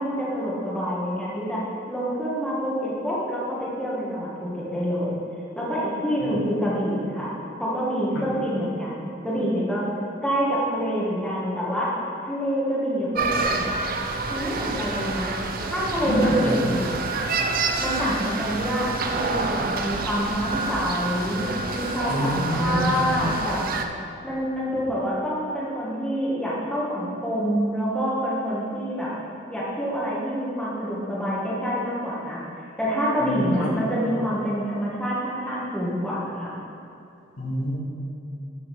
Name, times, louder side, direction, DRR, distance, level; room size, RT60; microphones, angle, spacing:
voice 1, 0.0-1.6 1.9-5.2 5.6-7.3 7.6-9.8 10.2-11.9 12.2-13.7 14.3-15.4 15.7-16.8 17.8-21.5 21.7-23.6 24.2-29.1 29.5-32.4 32.8-36.6, equal, 5° left, -8 dB, 1.9 m, -27 dB
sound 1, 13.1-23.9, right 3 dB, 50° right, 0.7 m, -28 dB
voice 2, 16.0-16.7 22.0-23.1 33.2-33.7 37.4-37.8, equal, 70° left, -6 dB, 2.6 m, -26 dB
12.5 x 5.6 x 5.5 m, 2.6 s
head